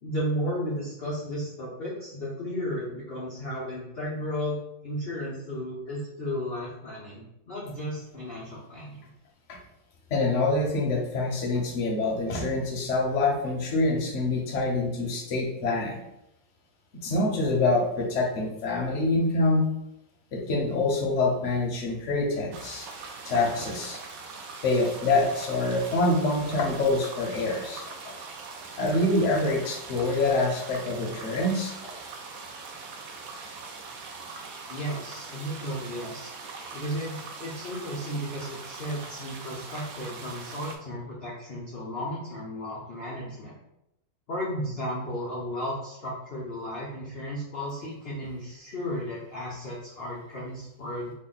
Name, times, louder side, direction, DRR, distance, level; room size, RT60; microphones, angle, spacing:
voice 1, 0.0-9.1 34.7-36.3 36.7-43.5 44.3-51.1, equal, 80° left, -6 dB, 0.5 m, -34 dB
voice 2, 10.1-16.0 17.0-19.7 20.3-22.9 23.2-24.0 24.6-28.1 28.8-31.7, left 2 dB, 60° left, -1 dB, 0.8 m, -26 dB
sound 1, 22.5-40.8, right 4 dB, 90° right, 0.7 m, -42 dB
3.3 x 2.2 x 3.8 m, 0.84 s
omnidirectional pair, 2.1 m